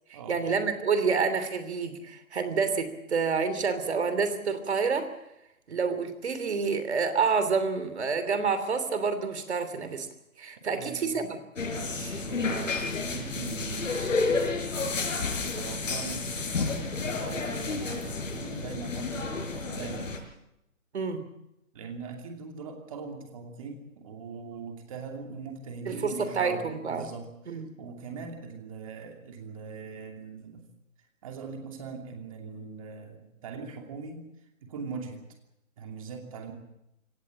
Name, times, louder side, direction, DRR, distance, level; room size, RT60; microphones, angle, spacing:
voice 1, 0.3-5.1 5.7-10.1 10.4-11.3 20.9-21.2 25.9-27.1 27.5-27.7, right 5 dB, 50° right, 11 dB, 3.1 m, -28 dB
voice 2, 10.6-11.2 11.8-20.1 21.7-30.7 31.2-34.2 34.6-35.2 35.8-36.5, right 5 dB, 25° right, 3 dB, 2.7 m, -41 dB
sound 1, 11.6-20.2, left 3 dB, 65° left, 6.2 m, -31 dB
23.0 x 18.0 x 7.5 m, 0.85 s
hypercardioid pair, 175°, 41 cm